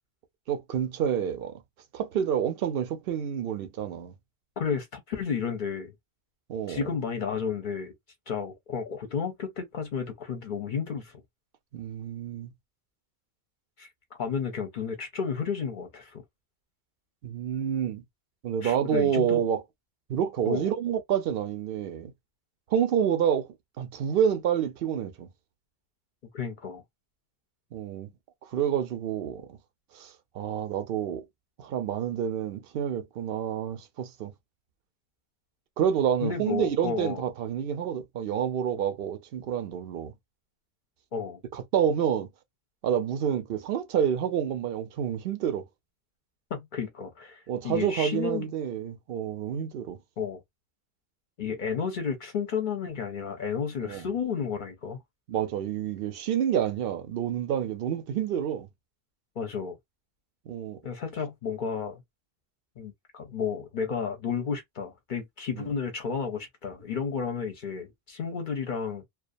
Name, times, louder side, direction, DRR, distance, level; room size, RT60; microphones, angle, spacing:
voice 1, 0.5-1.6 1.9-4.1 6.5-6.9 11.7-12.5 17.2-18.0 18.4-19.6 20.1-22.1 22.7-23.5 23.8-25.3 27.7-28.1 28.4-29.6 29.9-31.3 31.6-34.3 35.8-40.1 41.5-42.3 42.8-45.7 47.5-50.0 53.8-54.1 55.3-58.7 60.5-60.8 65.5-65.7, right 9 dB, 70° right, 0.8 m, -28 dB
voice 2, 4.6-5.9 6.7-7.9 8.3-11.2 13.8-13.9 14.2-16.2 18.6-19.4 20.4-20.7 26.3-26.8 36.2-37.2 41.1-41.4 46.5-48.5 50.2-50.4 51.4-55.0 59.4-59.8 60.8-62.0 62.8-69.1, left 6 dB, 55° left, 0.7 m, -32 dB
2.3 x 2.3 x 2.5 m
omnidirectional pair, 1.0 m